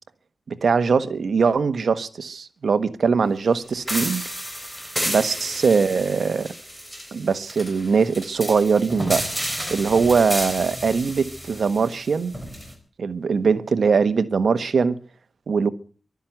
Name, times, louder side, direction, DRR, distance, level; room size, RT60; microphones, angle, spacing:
voice 1, 0.5-4.2 5.1-6.5 7.1-9.2 9.7-12.3 13.0-15.0 15.5-15.7, right 5 dB, 65° right, 1.3 m, -21 dB
sound 1, 3.9-12.7, equal, ahead, 4.3 m, -31 dB
12.0 x 11.0 x 9.2 m
cardioid pair, 80°, 0 cm